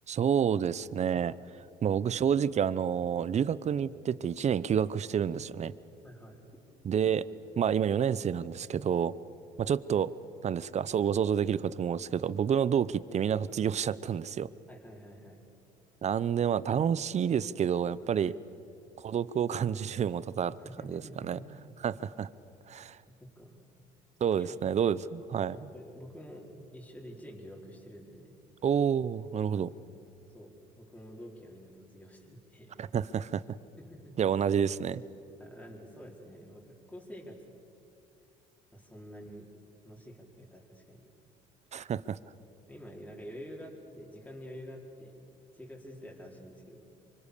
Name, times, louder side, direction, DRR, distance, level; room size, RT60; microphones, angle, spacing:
voice 1, 0.1-1.3 1.8-5.7 6.8-9.1 9.6-10.1 10.4-14.5 16.0-18.3 19.0-20.6 20.9-21.4 21.8-22.3 22.7-23.0 24.2-25.6 28.6-29.7 32.8-33.4 34.2-35.0 41.7-42.2, right 8 dB, 40° right, 18 dB, 0.8 m, -29 dB
voice 2, 6.0-6.4 14.7-15.4 18.2-18.4 20.6-21.8 22.7-23.6 24.4-24.7 25.5-28.4 29.5-29.6 30.3-32.8 33.8-34.2 35.4-37.5 38.7-39.5 39.8-41.1 42.7-45.2 45.5-46.9, equal, 10° left, -2 dB, 4.7 m, -48 dB
26.5 x 24.5 x 6.9 m, 2.7 s
supercardioid pair, 80°, 17 cm